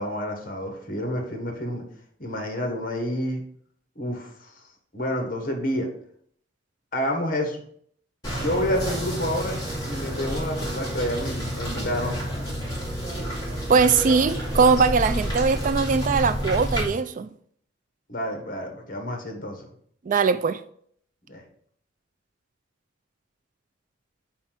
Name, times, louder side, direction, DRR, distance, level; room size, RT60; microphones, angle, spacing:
voice 1, 0.0-1.8 2.2-3.4 3.9-4.5 4.9-5.9 6.9-7.6 8.4-9.6 9.8-12.2 18.1-19.7 21.3-21.4, left 1 dB, 50° left, 1.5 m, -29 dB
sound 1, 8.2-16.9, equal, 20° left, 2.4 m, -29 dB
voice 2, 13.7-17.3 20.1-20.6, right 5 dB, 45° right, 0.3 m, -21 dB
4.5 x 4.3 x 5.8 m
head